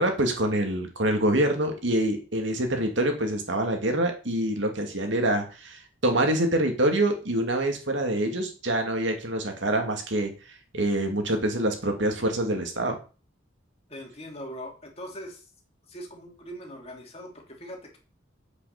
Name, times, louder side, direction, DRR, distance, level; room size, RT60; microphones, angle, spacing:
voice 1, 0.0-10.3 10.7-13.0, right 1 dB, 65° right, 4 dB, 2.6 m, -25 dB
voice 2, 13.9-15.5 15.9-18.0, equal, 30° left, 1 dB, 3.1 m, -41 dB
8.4 x 8.3 x 6.8 m, 0.35 s
head